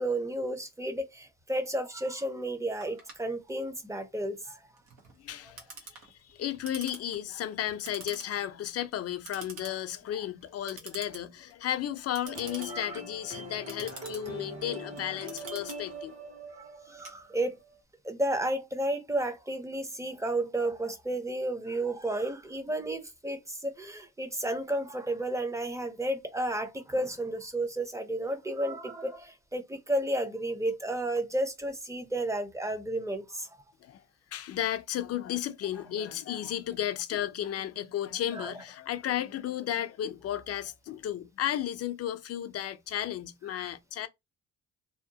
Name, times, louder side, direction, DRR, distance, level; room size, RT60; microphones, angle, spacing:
voice 1, 0.0-4.6 12.7-13.0 16.6-17.6 18.0-33.5 38.3-38.5 43.5-43.7, right 1 dB, 10° right, 0.6 m, -32 dB
Clock, 2.8-17.7, right 4 dB, 85° right, 1.0 m, -49 dB
voice 2, 5.2-5.6 5.9-16.1 33.8-34.0 34.3-44.1, left 11 dB, 55° left, 0.5 m, -34 dB
sound 1, 12.3-17.8, right 1 dB, 55° right, 1.3 m, -42 dB
2.8 x 2.1 x 2.7 m
cardioid pair, 90°, 30 cm